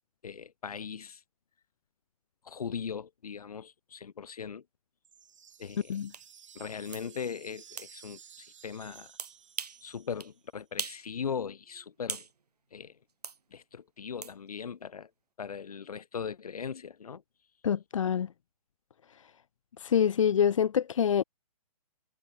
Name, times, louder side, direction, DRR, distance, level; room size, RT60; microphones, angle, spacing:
voice 1, 0.2-1.2 2.4-4.6 5.6-6.0 6.5-9.1 9.8-12.2 12.7-13.0 13.5-15.1 15.4-17.2, left 6 dB, 75° left, 2.1 m, -39 dB
sound 1, 5.0-10.5, right 8 dB, 55° right, 4.7 m, -55 dB
sound 2, 6.1-6.3 6.9-7.1 7.8-7.9 9.2-9.8 10.2-10.3 10.8-11.1 11.4-12.3 13.2-13.4 14.2-14.4, right 5 dB, 90° right, 3.5 m, -39 dB
voice 2, 17.6-18.3 19.8-21.2, left 8 dB, 55° left, 0.7 m, -26 dB
hypercardioid pair, 170°, 19 cm